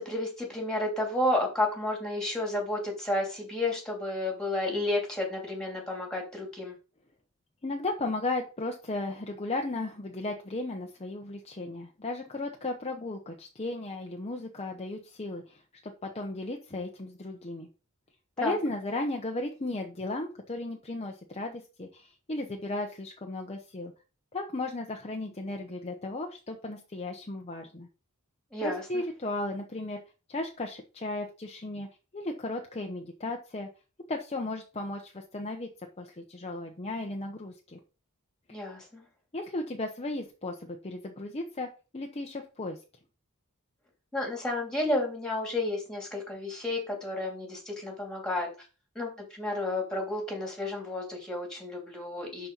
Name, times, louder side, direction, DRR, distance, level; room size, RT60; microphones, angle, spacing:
voice 1, 0.0-6.7 18.4-18.6 28.5-29.0 38.5-39.1 44.1-48.5 48.9-52.5, left 1 dB, 5° left, 0 dB, 2.9 m, -31 dB
voice 2, 7.6-17.7 18.4-23.9 24.3-27.9 28.6-30.0 30.3-31.9 32.1-33.7 34.1-35.7 36.0-37.8 38.5-38.6 39.3-42.8, left 2 dB, 30° left, 2 dB, 0.9 m, -35 dB
11.5 x 4.3 x 4.0 m, 0.33 s
head